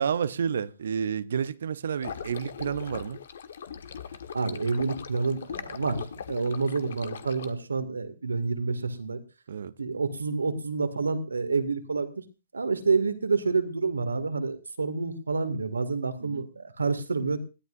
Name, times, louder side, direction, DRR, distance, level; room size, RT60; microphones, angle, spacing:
voice 1, 0.0-3.2 9.5-9.7 16.2-16.5, right 7 dB, 65° right, 0.7 m, -30 dB
sound 1, 2.0-7.5, left 7 dB, 60° left, 1.4 m, -40 dB
voice 2, 4.3-9.2 9.8-12.2 12.5-17.4, right 4 dB, 80° right, 2.3 m, -28 dB
21.5 x 14.5 x 2.6 m
figure-of-eight pair, 125°, 0 cm